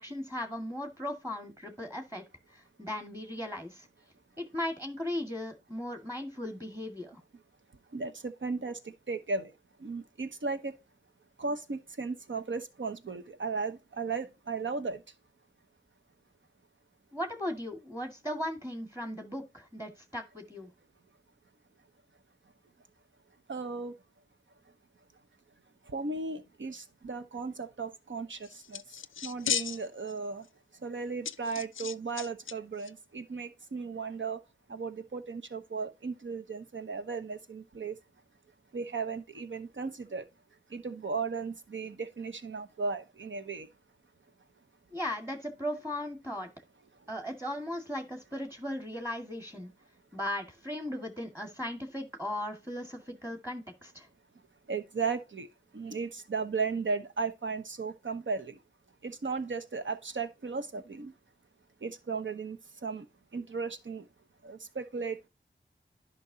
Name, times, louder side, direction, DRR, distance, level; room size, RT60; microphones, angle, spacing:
voice 1, 0.0-2.2 2.5-3.9 4.4-7.2 17.1-20.7 44.9-46.5 47.1-49.7 50.1-54.1, left 1 dB, 10° right, 2.1 m, -37 dB
voice 2, 7.9-9.5 9.8-10.7 11.4-15.0 23.5-23.9 25.9-28.8 29.2-30.5 30.8-34.4 34.7-37.9 38.7-40.2 40.7-43.7 54.7-55.5 55.7-58.6 59.0-61.1 61.8-63.0 63.3-64.1 64.4-65.3, right 4 dB, 75° right, 1.0 m, -36 dB
sound 1, 28.4-30.1 30.4-30.5 31.3-32.5 32.8-32.9, left 8 dB, 85° left, 0.4 m, -35 dB
10.5 x 5.4 x 2.8 m
cardioid pair, 45°, 20 cm